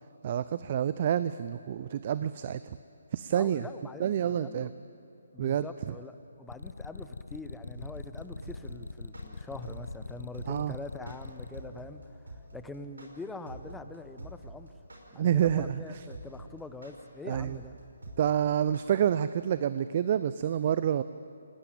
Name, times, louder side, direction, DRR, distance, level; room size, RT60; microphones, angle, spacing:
voice 1, 0.2-2.6 3.1-3.7 4.0-4.7 5.4-5.9 10.5-10.7 15.1-16.0 17.2-17.6 18.2-21.0, right 9 dB, 40° right, 14 dB, 0.6 m, -28 dB
voice 2, 3.3-4.7 5.3-12.1 12.5-14.7 15.1-17.8, left 3 dB, 5° left, 9 dB, 1.1 m, -44 dB
sound 1, 6.5-11.6, left 3 dB, 70° left, 1.1 m, -42 dB
sound 2, 7.7-18.8, right 2 dB, 75° right, 5.5 m, -44 dB
28.5 x 19.0 x 8.9 m, 3.0 s
figure-of-eight pair, 140°, 0 cm